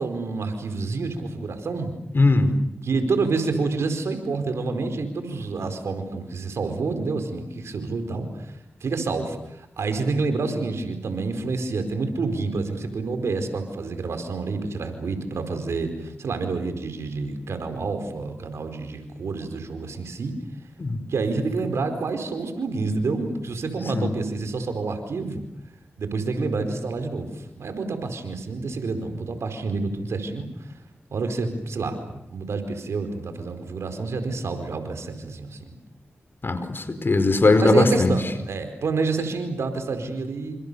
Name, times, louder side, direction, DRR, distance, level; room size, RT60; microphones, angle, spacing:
voice 1, 0.0-1.9 2.8-20.3 21.1-25.4 26.0-30.5 31.1-35.7 37.6-40.6, right 3 dB, 85° right, 8 dB, 4.7 m, -28 dB
voice 2, 2.1-2.5 20.8-21.0 23.9-24.1 36.4-38.1, left 3 dB, 55° left, 10 dB, 4.9 m, -19 dB
29.0 x 27.5 x 7.0 m, 0.80 s
cardioid pair, 40°, 5 cm